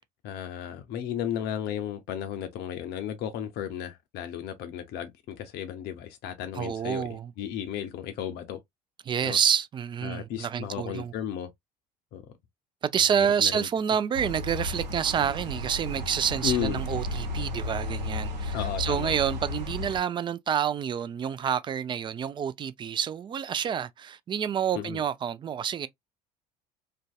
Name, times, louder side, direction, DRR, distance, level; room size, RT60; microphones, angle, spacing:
voice 1, 0.2-8.6 9.2-9.4 10.0-11.5 12.1-12.2 13.2-13.7 16.4-16.8 18.5-19.1 24.7-25.0, left 10 dB, 50° left, 0.5 m, -34 dB
voice 2, 6.6-7.3 9.1-11.1 12.8-25.9, right 8 dB, 25° right, 0.3 m, -28 dB
sound 1, 14.1-20.0, left 1 dB, 80° right, 0.8 m, -33 dB
2.6 x 2.1 x 2.3 m
figure-of-eight pair, 65°, 21 cm